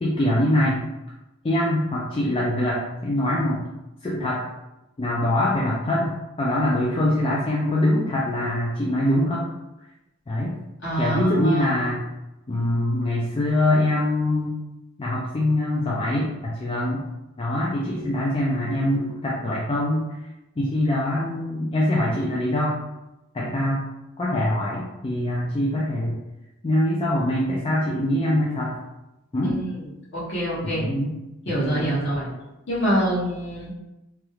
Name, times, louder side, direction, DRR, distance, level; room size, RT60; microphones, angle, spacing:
voice 1, 0.0-0.8 1.4-3.6 4.0-4.4 5.0-9.5 10.3-10.6 11.0-12.0 12.5-14.5 15.0-17.0 17.4-20.1 20.6-22.7 23.3-23.9 24.2-26.1 26.6-28.8 29.3-29.6 30.6-31.1 31.6-32.1, left 1 dB, 25° left, -5 dB, 0.4 m, -23 dB
voice 2, 10.8-11.8 29.4-29.8 30.1-30.9 31.5-32.3 32.7-33.7, right 1 dB, 60° left, -8 dB, 1.3 m, -26 dB
2.9 x 2.3 x 3.2 m, 0.96 s
head